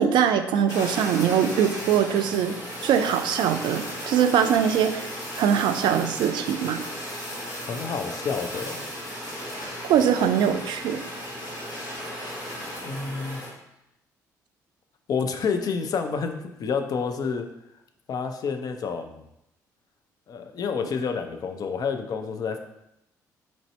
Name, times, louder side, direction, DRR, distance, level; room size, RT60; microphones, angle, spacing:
voice 1, 0.0-2.6 2.8-5.0 5.4-6.8 9.9-11.0, right 8 dB, 55° right, 8 dB, 0.3 m, -22 dB
Fire, 0.7-13.5, equal, 75° left, 1.1 m, -35 dB
voice 2, 7.6-8.8 12.6-13.4 15.1-17.5 18.1-19.3 20.3-22.6, left 5 dB, 40° left, 6 dB, 0.4 m, -29 dB
3.0 x 2.6 x 4.2 m, 0.85 s
figure-of-eight pair, 45°, 9 cm